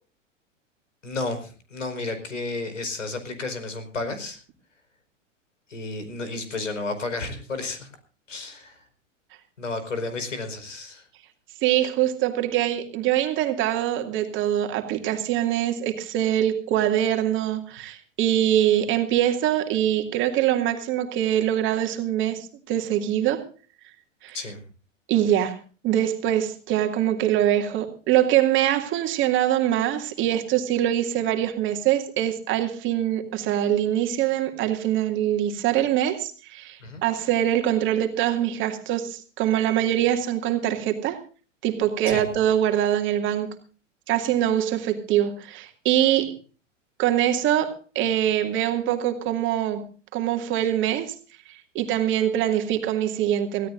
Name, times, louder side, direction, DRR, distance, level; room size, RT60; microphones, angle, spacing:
voice 1, 1.0-4.4 5.7-7.9 8.3-8.9 9.6-11.1 24.3-24.6 36.8-37.0 42.1-42.3, left 3 dB, 75° left, 9 dB, 4.9 m, -32 dB
voice 2, 11.6-23.4 24.2-24.4 25.1-25.6 25.8-41.2 41.6-43.5 44.1-46.3 47.0-49.8 50.1-51.1 51.7-53.7, right 11 dB, 30° right, 5 dB, 2.4 m, -23 dB
24.0 x 16.5 x 2.6 m, 0.37 s
figure-of-eight pair, 100°, 38 cm